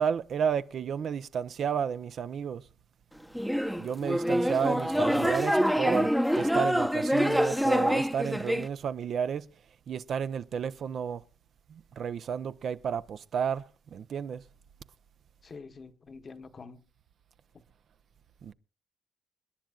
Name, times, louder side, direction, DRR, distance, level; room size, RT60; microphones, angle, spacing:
voice 1, 0.0-2.6 3.8-9.5 9.9-11.2 11.7-13.6 13.9-14.4 18.4-18.5, right 7 dB, 60° right, 0.7 m, -32 dB
sound 1, 3.3-8.7, equal, ahead, 0.8 m, -26 dB
voice 2, 15.4-16.8, left 4 dB, 40° left, 1.1 m, -46 dB
28.5 x 10.5 x 2.4 m
cardioid pair, 90°, 0 cm